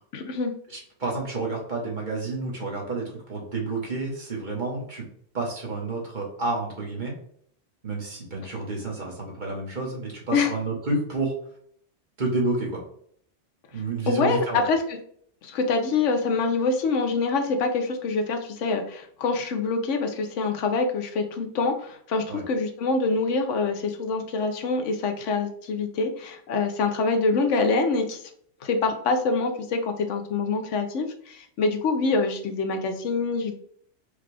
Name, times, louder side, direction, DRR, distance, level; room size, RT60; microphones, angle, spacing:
voice 1, 0.1-0.5 10.3-10.5 14.1-15.0 15.4-28.2 28.6-33.5, left 4 dB, 80° left, 6 dB, 1.0 m, -25 dB
voice 2, 0.7-5.0 5.3-7.1 7.8-11.3 12.2-12.8 13.7-14.6 22.3-22.4, right 3 dB, 40° right, -2 dB, 1.4 m, -30 dB
5.1 x 2.4 x 3.3 m, 0.63 s
omnidirectional pair, 1.2 m